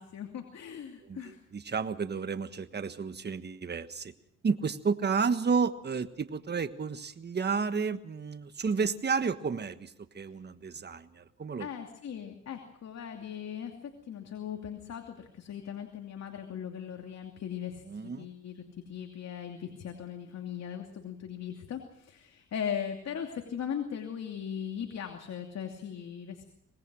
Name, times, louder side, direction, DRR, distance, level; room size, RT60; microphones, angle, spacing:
voice 1, 0.0-1.4 11.6-18.5 18.9-26.4, left 8 dB, 60° left, 4 dB, 2.8 m, -39 dB
voice 2, 1.0-4.1 4.4-11.7 17.9-18.3, right 5 dB, 35° right, 11 dB, 1.4 m, -31 dB
25.0 x 20.0 x 6.3 m, 0.75 s
cardioid pair, 90°, 30 cm